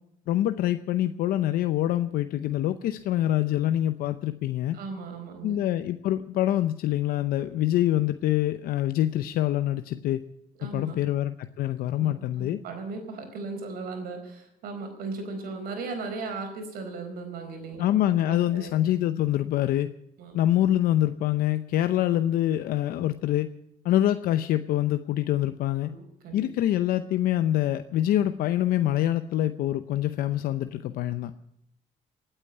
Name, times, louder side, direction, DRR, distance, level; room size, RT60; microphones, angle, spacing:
voice 1, 0.3-4.8 5.4-10.2 10.6-12.6 17.8-19.9 20.3-23.5 23.8-25.9 26.3-31.3, left 13 dB, 85° left, 10 dB, 0.7 m, -25 dB
voice 2, 4.7-5.6 10.6-11.1 11.9-17.9 18.3-18.7 20.2-20.4 25.8-26.5, right 4 dB, 85° right, 6 dB, 4.4 m, -37 dB
18.5 x 9.0 x 8.1 m, 0.78 s
cardioid pair, 115°, 15 cm